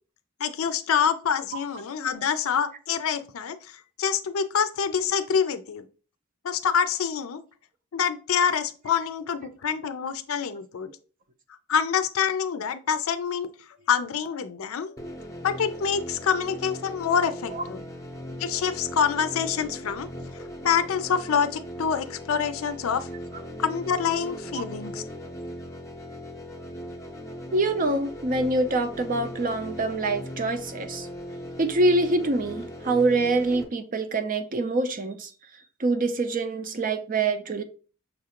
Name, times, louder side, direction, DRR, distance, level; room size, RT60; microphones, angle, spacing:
voice 1, 0.4-5.8 6.4-7.4 7.9-10.9 11.7-13.5 13.9-14.9 15.4-17.8 18.4-20.1 20.6-23.1 23.6-25.0, left 7 dB, 75° left, 0.4 m, -26 dB
sound 1, 15.0-33.6, equal, 15° left, 0.6 m, -39 dB
voice 2, 27.5-31.1 31.6-35.3 35.8-37.6, right 2 dB, 40° right, 0.5 m, -25 dB
6.3 x 2.4 x 2.8 m
head